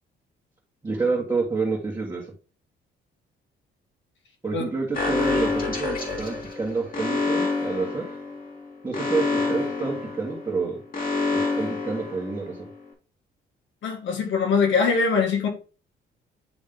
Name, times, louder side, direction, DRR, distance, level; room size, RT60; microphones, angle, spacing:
voice 1, 0.8-2.3 4.4-8.0 8.8-10.8 11.3-12.7, right 4 dB, 20° right, 1.6 m, -28 dB
Alarm, 4.9-12.7, left 3 dB, 45° left, 2.1 m, -28 dB
voice 2, 13.8-15.5, left 5 dB, 70° left, 1.7 m, -22 dB
9.2 x 3.1 x 3.8 m
cardioid pair, 90°, 20 cm